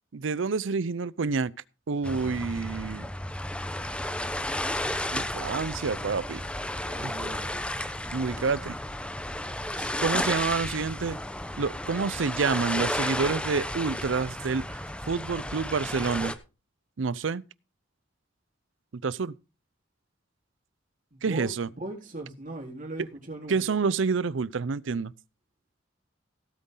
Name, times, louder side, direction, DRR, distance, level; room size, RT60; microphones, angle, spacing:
voice 1, 0.1-1.5 1.9-3.1 5.1-6.4 7.0-7.1 8.1-8.8 10.0-11.2 11.6-14.8 15.1-16.3 17.0-17.4 19.0-19.3 21.2-21.7 23.5-25.1, right 4 dB, 80° right, 0.6 m, -28 dB
sound 1, 2.0-16.4, left 1 dB, 5° left, 0.8 m, -33 dB
voice 2, 6.8-7.5 9.8-9.9 21.1-21.5 21.8-23.8, right 2 dB, 45° right, 3.9 m, -39 dB
17.0 x 8.2 x 3.9 m
head